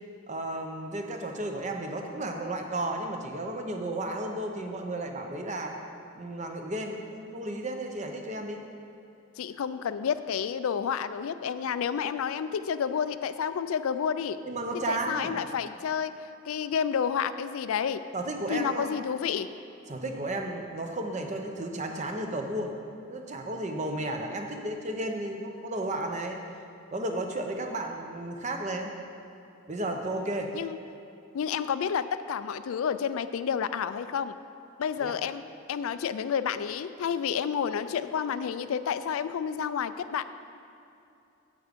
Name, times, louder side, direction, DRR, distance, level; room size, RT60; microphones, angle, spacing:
voice 1, 0.3-5.8 6.1-8.6 14.4-15.4 18.1-19.0 19.9-22.7 23.1-26.4 26.9-28.9 29.7-30.5 35.0-35.2, right 1 dB, 35° right, 3 dB, 0.7 m, -33 dB
voice 2, 9.4-14.4 14.9-16.1 16.5-18.0 18.5-19.5 30.5-30.8 31.3-34.4 34.8-35.4 35.7-40.2, left 7 dB, 75° left, 12 dB, 0.4 m, -30 dB
8.7 x 8.2 x 5.2 m, 2.7 s
head